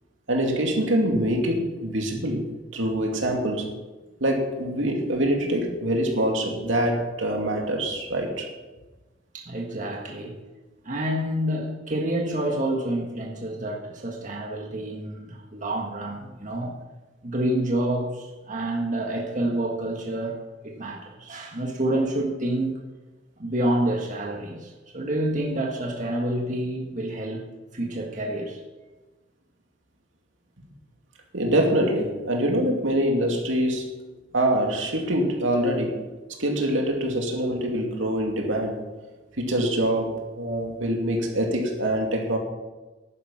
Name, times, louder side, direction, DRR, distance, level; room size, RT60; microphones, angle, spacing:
voice 1, 0.3-3.7 4.2-8.5 31.3-33.9 34.3-36.1 36.4-38.8 39.4-42.4, right 1 dB, 85° right, 1 dB, 2.5 m, -24 dB
voice 2, 9.3-10.4 10.8-16.7 17.2-20.3 20.6-22.7 23.4-28.6, right 1 dB, 40° right, 1 dB, 1.6 m, -28 dB
11.0 x 10.0 x 5.9 m, 1.2 s
head